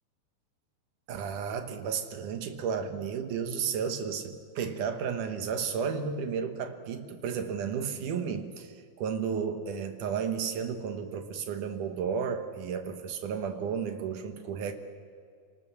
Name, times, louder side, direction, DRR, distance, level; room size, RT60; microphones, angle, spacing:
voice 1, 1.1-14.7, right 6 dB, 65° right, 8 dB, 2.2 m, -33 dB
25.0 x 19.0 x 7.1 m, 2.1 s
omnidirectional pair, 4.8 m